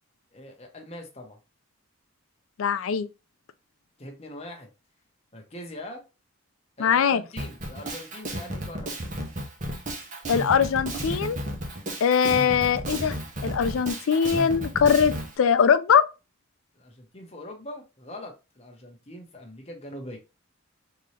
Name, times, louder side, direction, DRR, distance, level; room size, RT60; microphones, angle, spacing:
voice 1, 0.3-1.4 4.0-4.7 5.3-6.0 6.8-8.9 16.8-20.2, left 1 dB, 30° left, 0.9 m, -42 dB
voice 2, 2.6-3.1 6.8-7.2 10.3-11.4 12.0-13.2 13.4-16.0, left 7 dB, 75° left, 0.4 m, -21 dB
Drum kit, 7.4-15.3, right 1 dB, 35° right, 0.9 m, -33 dB
3.7 x 2.9 x 3.1 m
head